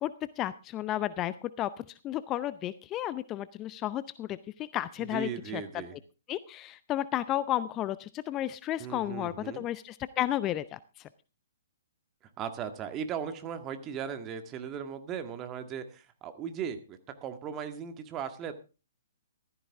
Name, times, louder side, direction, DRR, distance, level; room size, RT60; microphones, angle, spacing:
voice 1, 0.0-5.8 6.3-10.8, left 13 dB, 25° left, 16 dB, 0.6 m, -33 dB
voice 2, 5.0-6.0 8.8-9.7 12.4-18.5, right 7 dB, 25° right, 8 dB, 1.8 m, -37 dB
15.5 x 13.5 x 3.5 m, 0.33 s
figure-of-eight pair, 125°, 0 cm